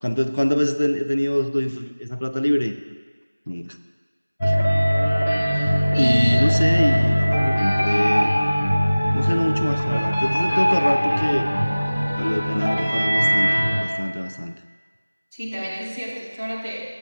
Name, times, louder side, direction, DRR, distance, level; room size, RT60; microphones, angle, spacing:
voice 1, 0.0-2.7 3.5-3.8 4.4-4.6 6.0-8.4 9.1-11.5 12.2-14.6, equal, 55° left, 7 dB, 0.5 m, -24 dB
sound 1, 4.4-13.8, equal, 10° left, 0.7 m, -20 dB
voice 2, 5.5-6.5 15.3-16.8, equal, 5° right, -14 dB, 1.3 m, -30 dB
13.5 x 8.4 x 2.3 m, 1.4 s
figure-of-eight pair, 175°, 0 cm